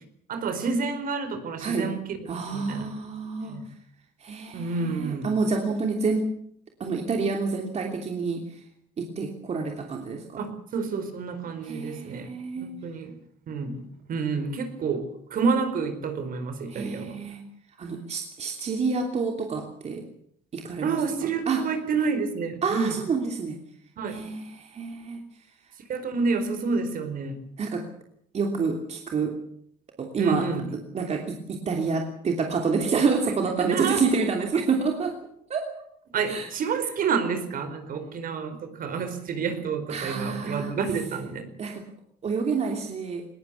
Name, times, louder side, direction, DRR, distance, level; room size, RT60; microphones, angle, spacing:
voice 1, 0.3-2.2 2.5-2.9 3.5-3.7 4.5-5.3 10.4-12.3 12.6-13.1 13.5-13.8 14.1-17.2 20.8-23.0 24.0-24.2 25.9-27.4 30.2-30.7 33.2-33.3 33.6-34.0 36.1-41.5, right 5 dB, 55° right, 9 dB, 4.7 m, -29 dB
voice 2, 1.6-1.9 2.3-3.6 4.2-6.3 6.8-8.6 9.0-10.4 11.6-12.8 16.7-17.4 17.8-20.0 20.5-21.6 22.6-23.6 24.1-25.2 27.6-27.9 28.3-29.4 30.0-30.5 30.9-35.2 35.5-35.6 36.3-36.5 39.9-40.7 41.6-41.8 42.2-43.3, right 4 dB, 40° right, 3 dB, 3.1 m, -28 dB
20.0 x 19.0 x 8.4 m, 0.68 s
cardioid pair, 110°, 17 cm